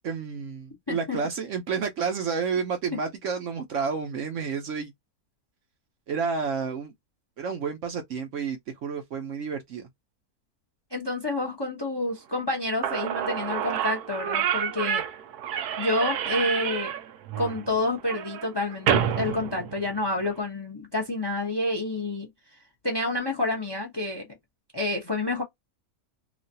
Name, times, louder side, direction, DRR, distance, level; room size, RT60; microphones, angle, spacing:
voice 1, 0.0-4.9 6.1-6.9 7.4-9.9, right 5 dB, 60° right, 0.9 m, -30 dB
voice 2, 0.9-1.2 10.9-15.0 15.8-16.9 17.4-22.3 22.8-24.3 24.7-25.4, left 2 dB, 20° left, 0.7 m, -28 dB
Slam / Squeak, 12.5-12.6 12.8-20.3, right 9 dB, 85° right, 1.2 m, -29 dB
3.0 x 2.4 x 2.6 m
omnidirectional pair, 1.6 m